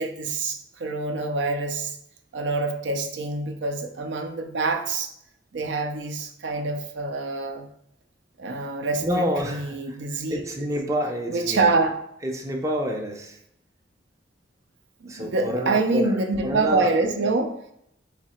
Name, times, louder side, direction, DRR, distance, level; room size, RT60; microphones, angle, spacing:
voice 1, 0.0-2.0 2.3-5.1 5.5-7.7 8.4-10.4 11.3-11.9 15.0-17.5, right 3 dB, 65° right, 5 dB, 0.5 m, -26 dB
voice 2, 9.0-11.6 12.2-13.4 15.1-16.9, equal, 15° right, 1 dB, 0.5 m, -28 dB
4.0 x 2.7 x 4.2 m, 0.74 s
head